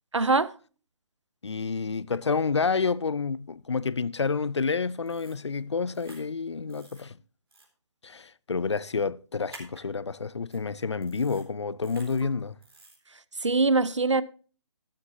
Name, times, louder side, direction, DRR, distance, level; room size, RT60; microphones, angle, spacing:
voice 1, 0.1-0.5 12.2-12.3 13.4-14.2, right 3 dB, 75° right, 0.8 m, -23 dB
voice 2, 1.4-7.2 8.0-12.6, left 5 dB, 70° left, 0.6 m, -29 dB
sound 1, 5.1-5.4 5.9-6.2 6.7-7.0 7.5-7.7 9.5-9.8 10.5-10.6 11.0-11.4 11.8-12.2 12.6-13.0, right 2 dB, 50° right, 4.2 m, -50 dB
13.0 x 10.5 x 2.7 m
figure-of-eight pair, 145°, 15 cm